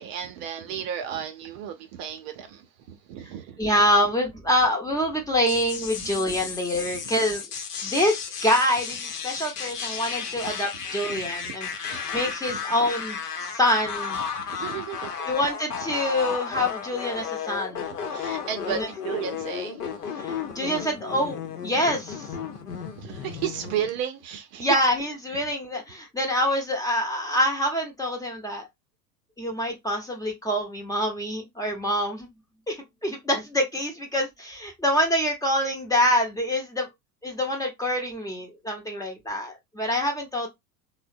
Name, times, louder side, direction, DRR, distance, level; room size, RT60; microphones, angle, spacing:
voice 1, 0.0-3.6 6.9-7.1 10.3-10.5 11.1-11.3 11.9-12.2 12.5-12.6 14.3-15.3 16.3-16.7 18.1-20.6 21.7-21.8 22.7-24.7 25.3-25.5, right 9 dB, 45° right, 0.6 m, -34 dB
voice 2, 3.6-7.4 7.8-14.2 15.3-17.9 18.7-18.9 20.2-22.3 24.6-28.7 29.4-32.3 32.7-36.9 37.2-40.5, left 1 dB, 10° left, 0.7 m, -26 dB
sound 1, 5.5-23.9, left 7 dB, 75° left, 0.9 m, -34 dB
3.4 x 2.2 x 2.5 m
figure-of-eight pair, 90°, 46 cm